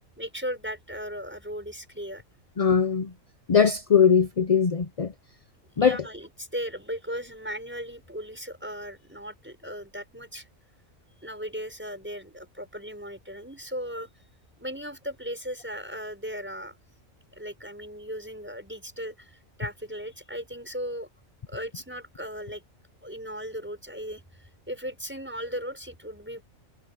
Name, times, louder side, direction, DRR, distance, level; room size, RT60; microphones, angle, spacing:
voice 1, 0.2-2.2 5.8-10.5 11.2-14.1 14.6-16.8 17.3-21.1 21.5-22.6 23.0-26.4, equal, 10° right, 6.4 m, -37 dB
voice 2, 2.6-3.1 3.5-5.1 5.8-6.0, left 7 dB, 40° left, 0.6 m, -21 dB
omnidirectional pair, 1.4 m